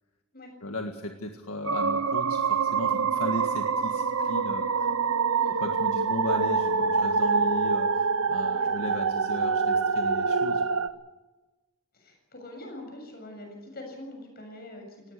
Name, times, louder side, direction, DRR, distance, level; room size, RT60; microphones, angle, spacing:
voice 1, 0.6-4.9 5.5-10.6, left 1 dB, 75° left, 3 dB, 1.8 m, -36 dB
sound 1, 1.6-10.9, right 5 dB, 75° right, 0.9 m, -25 dB
voice 2, 11.9-15.1, left 1 dB, 45° left, 3 dB, 7.0 m, -44 dB
19.5 x 17.5 x 8.3 m, 1.2 s
head